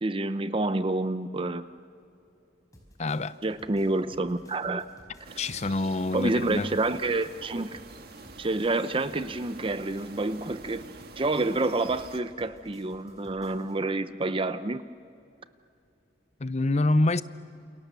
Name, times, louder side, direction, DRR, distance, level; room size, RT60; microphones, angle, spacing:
voice 1, 0.0-1.6 3.4-4.8 6.1-7.8 8.4-10.9 11.2-14.8, right 2 dB, 30° right, 0.7 m, -28 dB
sound 1, 2.7-13.8, equal, 20° left, 5.5 m, -56 dB
voice 2, 3.0-3.4 5.4-6.7 16.4-17.2, left 2 dB, 40° left, 0.7 m, -26 dB
sound 2, 5.2-12.2, right 3 dB, 60° right, 1.6 m, -47 dB
29.0 x 28.5 x 6.9 m
head